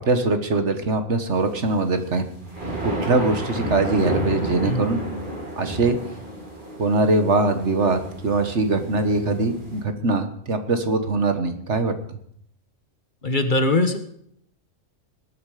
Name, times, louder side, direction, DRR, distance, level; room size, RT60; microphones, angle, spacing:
voice 1, 0.1-2.3 2.8-5.0 5.6-6.0 6.8-12.2, right 3 dB, 60° right, 8 dB, 1.7 m, -22 dB
sound 1, 1.8-9.8, right 1 dB, 40° right, 4.1 m, -31 dB
voice 2, 13.2-14.0, left 2 dB, 40° left, 8 dB, 1.3 m, -21 dB
20.0 x 9.4 x 5.0 m, 0.69 s
omnidirectional pair, 1.4 m